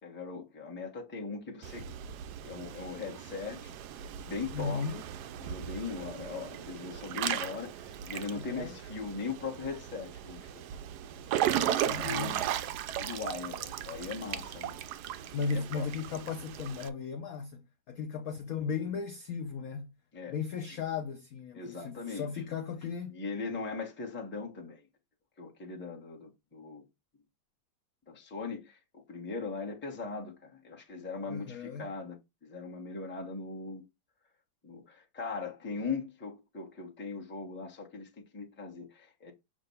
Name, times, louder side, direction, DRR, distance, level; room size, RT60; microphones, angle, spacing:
voice 1, 0.0-1.9 2.4-3.7 4.2-4.8 5.4-10.6 11.4-12.4 13.0-14.8 15.5-15.9 20.1-20.4 21.5-22.3 23.1-24.8 25.4-26.8 28.1-33.8 34.6-39.3, left 4 dB, 10° left, 0.8 m, -39 dB
Water / Splash splatter / Drip, 1.6-16.9, right 11 dB, 80° right, 0.9 m, -36 dB
voice 2, 4.5-5.0 8.3-8.8 11.7-12.4 15.3-19.9 20.3-23.1 31.3-31.9, left 5 dB, 75° left, 0.8 m, -36 dB
7.4 x 2.5 x 5.5 m
omnidirectional pair, 2.2 m